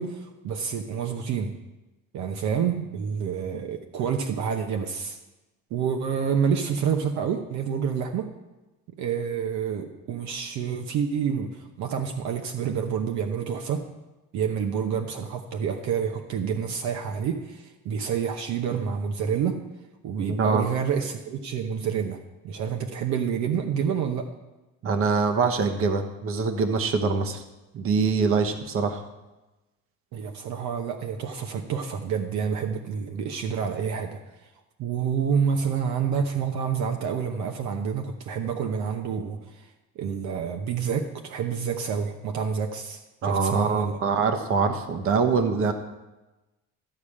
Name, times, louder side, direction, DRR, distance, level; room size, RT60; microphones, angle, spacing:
voice 1, 0.0-1.5 2.1-5.2 5.7-8.3 9.0-13.8 14.3-19.6 20.0-22.2 22.4-24.3 30.1-34.2 34.8-39.6 40.0-44.0, right 7 dB, 65° right, 4 dB, 1.0 m, -28 dB
voice 2, 20.3-20.7 24.8-27.4 27.7-29.0 43.2-45.7, right 4 dB, 45° right, 6 dB, 1.1 m, -24 dB
13.0 x 5.0 x 8.6 m, 1.1 s
cardioid pair, 150°, 31 cm